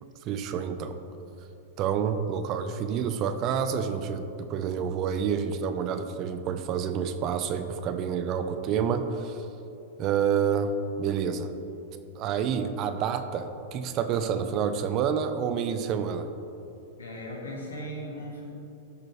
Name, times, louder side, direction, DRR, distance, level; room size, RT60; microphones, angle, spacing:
voice 1, 0.2-1.0 1.8-9.5 10.0-11.5 12.1-16.3, right 7 dB, 40° right, 8 dB, 0.5 m, -28 dB
voice 2, 17.0-18.4, equal, 75° left, -1 dB, 1.7 m, -37 dB
13.5 x 4.8 x 3.2 m, 2.8 s
figure-of-eight pair, 100°, 0 cm